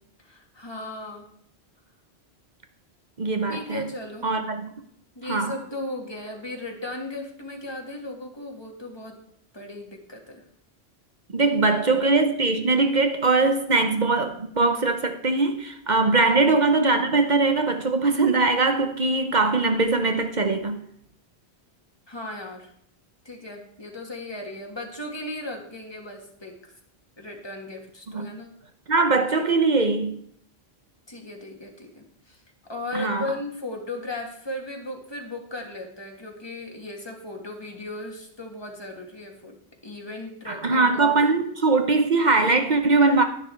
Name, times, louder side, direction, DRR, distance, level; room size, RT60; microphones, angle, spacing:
voice 1, 0.2-1.3 3.5-4.3 5.2-9.2 9.5-10.4 11.7-12.0 16.2-16.4 22.1-22.7 23.3-26.7 27.2-28.5 31.1-32.4 32.7-39.6 39.8-41.4, left 1 dB, 25° left, 2.0 m, -36 dB
voice 2, 3.2-3.9 4.2-4.7 5.3-5.5 11.3-20.8 28.1-28.3 28.9-30.2 32.9-33.3 40.5-43.2, right 3 dB, 45° right, 0.9 m, -21 dB
10.5 x 10.5 x 4.5 m
omnidirectional pair, 1.1 m